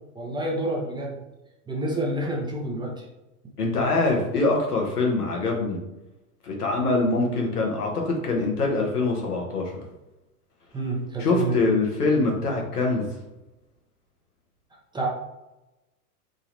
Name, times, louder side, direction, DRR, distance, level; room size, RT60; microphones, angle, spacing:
voice 1, 0.1-1.2 1.7-3.1 10.7-11.6 14.9-15.1, right 1 dB, 10° right, -2 dB, 0.8 m, -28 dB
voice 2, 3.6-5.8 6.4-9.8 11.2-13.1, left 3 dB, 90° left, 0 dB, 1.4 m, -24 dB
3.9 x 2.9 x 4.0 m, 0.98 s
hypercardioid pair, 110°, 45 cm